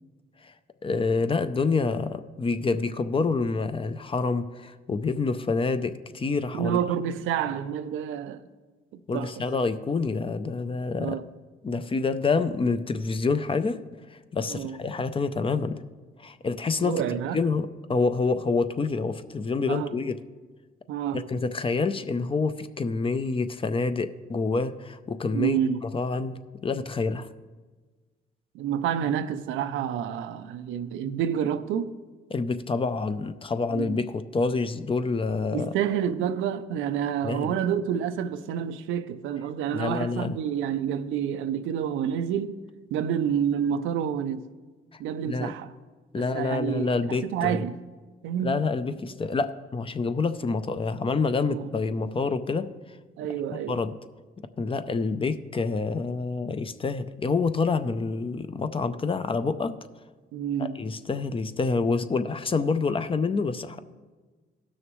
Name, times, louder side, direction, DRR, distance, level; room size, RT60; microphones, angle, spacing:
voice 1, 0.8-6.8 9.1-11.2 11.6-13.8 14.1-15.8 16.2-20.2 21.1-25.6 25.9-27.3 32.3-35.7 37.2-37.6 39.7-40.4 45.3-45.5 46.1-47.7 48.4-52.7 53.7-53.9 54.6-59.7 60.6-63.8, left 4 dB, 25° left, 0.5 m, -27 dB
voice 2, 6.5-8.5 8.9-9.4 11.0-11.2 14.4-14.8 16.8-17.4 19.7-20.0 20.9-21.3 25.3-25.8 28.5-31.9 33.7-34.0 35.5-42.6 42.9-44.5 45.0-45.7 46.2-46.9 47.2-47.8 48.2-48.7 51.4-51.7 53.2-53.8 60.3-60.8, right 9 dB, 85° right, 0.5 m, -29 dB
16.5 x 6.4 x 3.1 m
cardioid pair, 90°, 20 cm